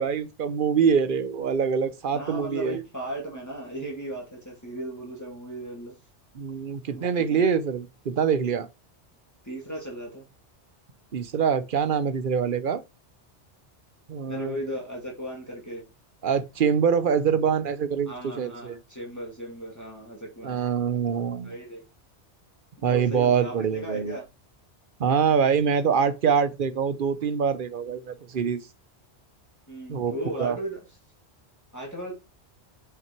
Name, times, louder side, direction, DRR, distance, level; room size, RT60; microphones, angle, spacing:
voice 1, 0.0-2.8 6.3-8.7 11.1-12.8 14.1-14.6 16.2-18.8 20.4-21.5 22.8-24.2 25.0-28.6 29.9-30.1 30.4-30.6, right 7 dB, 50° right, 0.9 m, -24 dB
voice 2, 2.1-5.9 6.9-7.5 9.4-10.2 14.3-15.8 18.1-20.6 21.4-21.8 22.8-24.2 29.7-30.8 31.7-32.1, right 1 dB, 15° left, 2.5 m, -36 dB
6.2 x 5.9 x 4.5 m
omnidirectional pair, 1.2 m